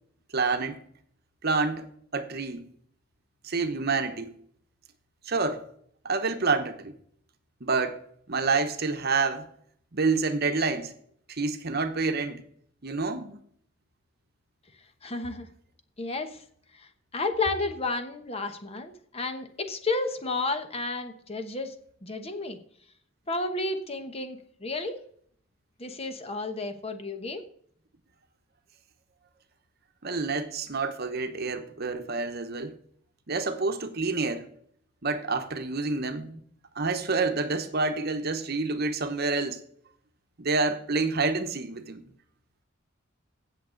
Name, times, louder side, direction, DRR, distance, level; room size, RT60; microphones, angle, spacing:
voice 1, 0.3-0.8 1.4-1.9 2.1-2.7 3.4-4.3 5.3-5.6 6.0-6.9 7.6-8.0 8.3-9.5 9.9-10.9 11.3-12.4 12.8-13.4 30.0-32.7 33.3-34.5 35.0-36.4 36.7-39.6 40.4-42.0, right 4 dB, 50° right, 1.0 m, -28 dB
voice 2, 15.0-15.5 16.0-16.4 16.7-21.7 22.0-22.6 23.3-25.0 25.8-27.4, left 3 dB, 30° left, 1.1 m, -32 dB
16.5 x 6.6 x 3.9 m
head